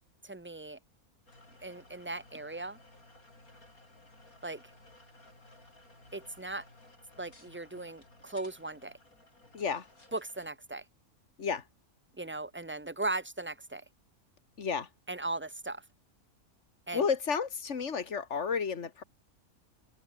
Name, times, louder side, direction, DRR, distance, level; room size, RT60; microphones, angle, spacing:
voice 1, 0.2-0.8 1.6-2.8 4.4-4.6 6.1-6.6 7.2-8.9 10.1-10.8 12.2-13.8 15.1-15.8 16.9-17.1, right 2 dB, 10° right, 0.8 m, -38 dB
sound 1, 1.3-10.5, left 2 dB, 85° left, 8.0 m, -58 dB
voice 2, 9.5-9.9 11.4-11.6 14.6-14.9 16.9-19.0, left 6 dB, 55° left, 2.1 m, -31 dB
omnidirectional pair, 1.5 m